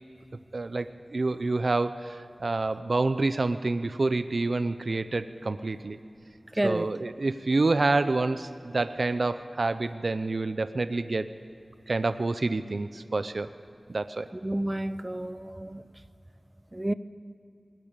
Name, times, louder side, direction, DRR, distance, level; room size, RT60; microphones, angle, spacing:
voice 1, 0.5-6.0 6.6-11.3 11.9-13.5 13.9-14.3, right 3 dB, 60° right, 0.6 m, -28 dB
voice 2, 6.6-6.9 14.4-15.8 16.7-16.9, right 1 dB, 20° right, 0.6 m, -29 dB
20.0 x 19.0 x 8.9 m
wide cardioid pair, 80°, 0 cm